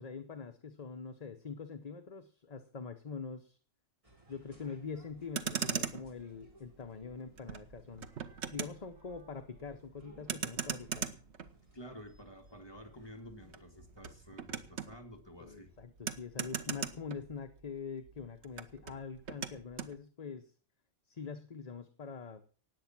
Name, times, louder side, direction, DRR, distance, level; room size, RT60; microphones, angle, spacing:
voice 1, 0.0-3.6 4.3-8.1 8.5-11.1 15.4-20.5 21.1-22.5, left 5 dB, 35° left, 8 dB, 0.9 m, -44 dB
sound 1, 4.0-14.8, right 1 dB, 25° right, 4.2 m, -63 dB
Motor vehicle (road), 5.1-17.8 18.0-20.0, right 7 dB, 65° right, 1.3 m, -41 dB
voice 2, 11.7-15.7, equal, 20° left, 3 dB, 2.4 m, -51 dB
18.5 x 8.3 x 6.0 m, 0.41 s
omnidirectional pair, 1.2 m